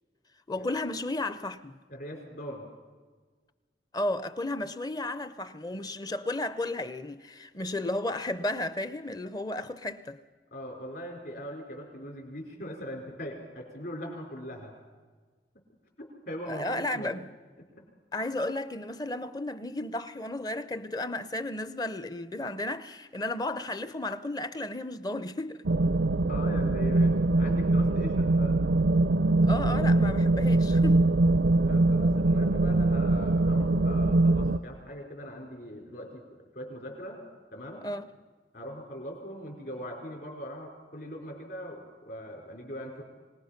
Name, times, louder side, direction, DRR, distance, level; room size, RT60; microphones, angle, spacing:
voice 1, 0.5-1.8 3.9-10.2 16.5-17.3 18.1-25.6 29.4-31.1 37.8-38.1, left 1 dB, 20° left, 0.6 m, -33 dB
voice 2, 1.9-2.7 10.5-14.8 16.0-17.2 17.6-17.9 26.3-28.6 31.6-36.2 36.5-37.2 37.5-37.9 38.5-43.0, equal, 55° left, 4.8 m, -41 dB
sound 1, 25.6-34.6, right 2 dB, 80° right, 0.5 m, -23 dB
25.0 x 18.5 x 5.8 m
head